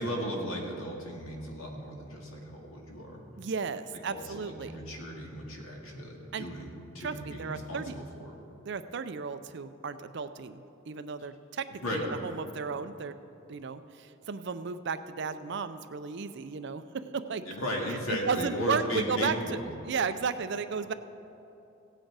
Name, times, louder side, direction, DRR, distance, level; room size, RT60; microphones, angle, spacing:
voice 1, 0.0-3.2 4.1-8.4 11.8-12.0 17.5-19.7, equal, 80° left, 0 dB, 2.0 m, -36 dB
voice 2, 3.4-4.8 6.3-6.5 7.0-7.9 8.7-13.2 13.5-17.4 17.9-19.6 19.8-20.9, right 5 dB, 55° right, 11 dB, 0.5 m, -34 dB
16.5 x 9.1 x 4.7 m, 2.9 s
head